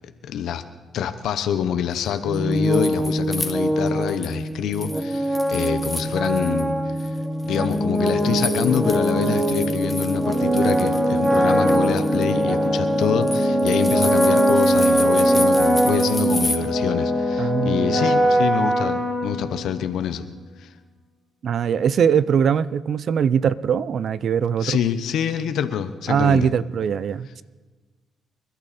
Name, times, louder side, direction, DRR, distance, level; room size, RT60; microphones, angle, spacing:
voice 1, 0.2-0.6 0.9-7.1 7.4-20.3 20.6-20.7 24.6-26.5, left 8 dB, 75° left, 10 dB, 1.0 m, -26 dB
sound 1, 2.2-19.9, equal, 20° right, 2.5 m, -21 dB
sound 2, 2.3-4.4 4.7-6.6 7.0-16.6, left 2 dB, 10° left, 1.6 m, -33 dB
voice 2, 17.4-18.1 21.4-24.8 26.1-27.4, right 7 dB, 60° right, 18 dB, 0.6 m, -21 dB
27.5 x 12.0 x 4.3 m, 1.3 s
cardioid pair, 90°, 0 cm